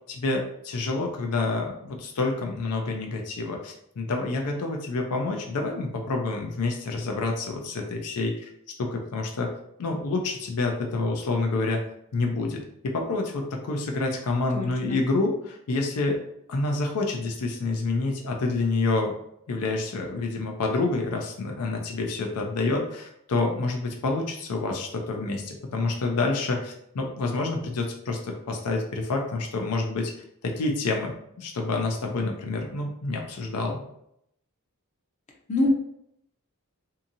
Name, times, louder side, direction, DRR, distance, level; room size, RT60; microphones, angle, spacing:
voice 1, 0.1-8.5 8.8-9.5 9.8-11.8 12.1-16.2 16.5-19.2 19.5-33.8, left 3 dB, 90° left, 2 dB, 0.5 m, -28 dB
voice 2, 14.5-15.0 35.5-35.7, left 1 dB, 30° left, 0 dB, 0.5 m, -24 dB
2.7 x 2.6 x 2.5 m, 0.74 s
head